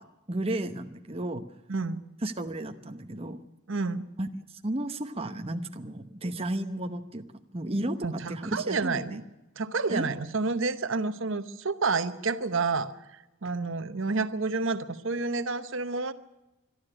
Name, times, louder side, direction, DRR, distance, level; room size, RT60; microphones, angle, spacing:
voice 1, 0.0-1.4 2.2-3.4 4.2-4.3 4.6-7.2 7.5-9.2 9.9-10.1, right 1 dB, 25° right, 6 dB, 0.9 m, -33 dB
voice 2, 1.7-2.0 3.7-4.1 8.0-9.2 9.6-16.1, right 4 dB, 60° right, 11 dB, 0.9 m, -29 dB
22.0 x 13.0 x 10.0 m, 1.0 s
head